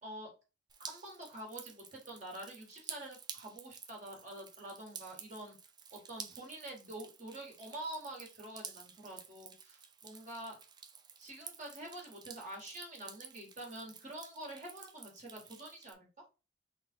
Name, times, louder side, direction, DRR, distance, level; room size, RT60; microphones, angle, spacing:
Drip, 0.7-15.9, right 6 dB, 25° right, 0.3 m, -52 dB
voice 1, 0.8-5.5 5.9-10.6 11.2-16.1, right 1 dB, 40° right, -1 dB, 1.5 m, -47 dB
3.6 x 2.4 x 4.3 m, 0.31 s
head